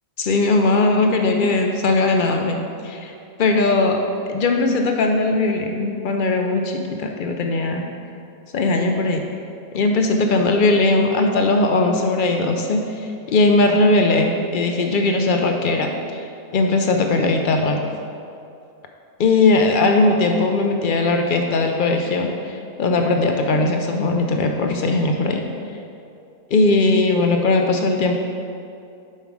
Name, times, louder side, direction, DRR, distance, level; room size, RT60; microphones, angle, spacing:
voice 1, 0.2-2.6 2.8-3.1 3.4-4.0 4.3-7.9 8.5-9.2 9.7-17.8 19.2-25.4 26.5-28.1, left 2 dB, 65° left, 3 dB, 0.5 m, -19 dB
7.2 x 5.6 x 4.8 m, 2.5 s
omnidirectional pair, 1.5 m